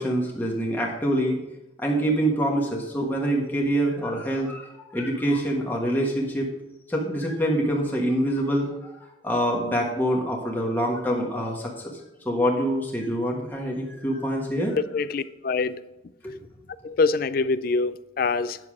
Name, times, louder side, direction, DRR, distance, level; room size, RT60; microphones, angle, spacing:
voice 1, 0.0-1.4 1.8-6.5 6.9-9.0 9.2-12.0 12.2-14.8 16.2-16.4, right 1 dB, 10° left, 1.4 m, -25 dB
voice 2, 14.8-15.8 16.8-18.6, left 4 dB, 45° left, 0.3 m, -25 dB
9.7 x 6.8 x 4.8 m
head